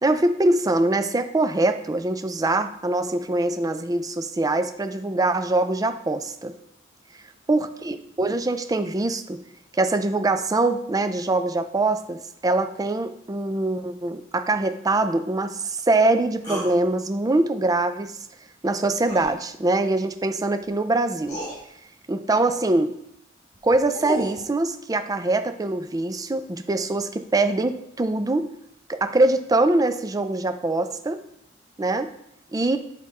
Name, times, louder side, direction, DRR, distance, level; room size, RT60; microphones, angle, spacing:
voice 1, 0.0-6.6 7.5-9.4 9.7-18.1 18.6-21.4 22.1-22.9 23.6-28.5 28.9-31.2 31.8-32.1 32.5-32.8, right 2 dB, 20° right, 9 dB, 0.4 m, -23 dB
sound 1, 16.4-16.7 19.0-19.3 20.6-20.7 21.3-21.6 23.5-24.4, left 1 dB, 20° left, 2.3 m, -32 dB
8.5 x 3.7 x 4.1 m, 0.77 s
head